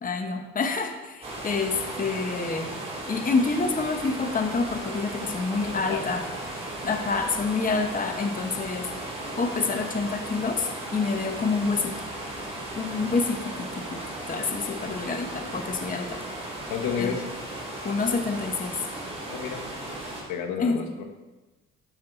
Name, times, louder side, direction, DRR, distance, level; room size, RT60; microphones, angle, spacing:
voice 1, 0.0-2.7 3.1-6.2 6.8-8.9 9.4-11.9 12.7-14.0 14.3-16.1 17.0-17.1 17.8-18.8 20.6-20.9, left 4 dB, 30° left, 5 dB, 1.1 m, -27 dB
sound 1, 1.2-20.2, right 1 dB, 20° right, 3.1 m, -36 dB
voice 2, 5.7-6.0 16.7-17.2 19.3-19.6 20.3-21.0, left 7 dB, 85° left, 4 dB, 1.5 m, -31 dB
12.5 x 6.4 x 4.1 m, 1.2 s
cardioid pair, 105°, 29 cm